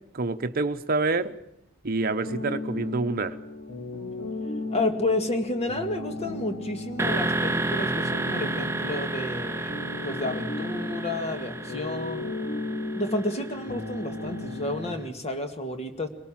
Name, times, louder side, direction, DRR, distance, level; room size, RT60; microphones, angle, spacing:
voice 1, 0.1-1.3 1.8-3.4, right 3 dB, 45° right, 8 dB, 0.9 m, -27 dB
sound 1, 2.2-14.9, left 2 dB, 80° left, 4.1 m, -35 dB
voice 2, 4.7-9.8 10.0-12.3 12.9-16.1, left 1 dB, 30° left, 6 dB, 1.9 m, -31 dB
sound 2, 7.0-14.8, right 2 dB, 15° right, 0.8 m, -31 dB
23.0 x 18.5 x 7.4 m, 0.76 s
head